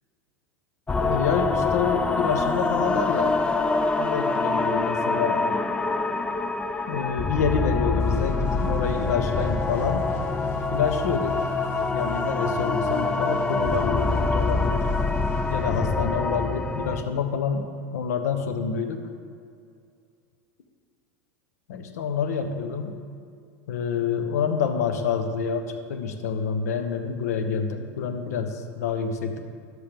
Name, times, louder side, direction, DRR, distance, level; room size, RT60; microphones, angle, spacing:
sound 1, 0.9-17.0, left 3 dB, 10° left, 0.4 m, -25 dB
voice 1, 1.0-3.5 4.0-5.4 6.9-10.0 10.7-11.4 11.9-14.9 15.5-17.7 17.9-19.1 21.7-22.9 23.7-29.4, left 6 dB, 80° left, 7 dB, 0.9 m, -27 dB
sound 2, 8.0-15.8, left 1 dB, 30° left, 2.0 m, -35 dB
11.0 x 7.5 x 3.4 m, 2.3 s
hypercardioid pair, 100°, 8 cm